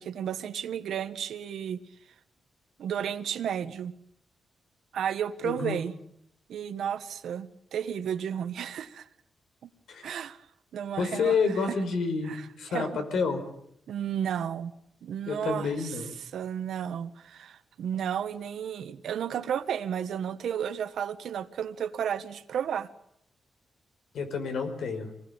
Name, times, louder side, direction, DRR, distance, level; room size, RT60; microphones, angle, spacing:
voice 1, 0.0-1.8 2.8-3.9 4.9-5.9 6.5-9.1 9.6-9.7 10.0-10.5 10.7-11.8 12.3-13.0 13.9-14.7 15.0-22.9, right 8 dB, 85° right, 11 dB, 1.5 m, -33 dB
voice 2, 5.4-5.8 9.9-10.1 11.0-12.3 12.6-13.4 15.3-16.1 24.1-25.1, left 5 dB, 85° left, 7 dB, 5.2 m, -29 dB
26.5 x 19.5 x 9.0 m, 0.74 s
wide cardioid pair, 135°, 0 cm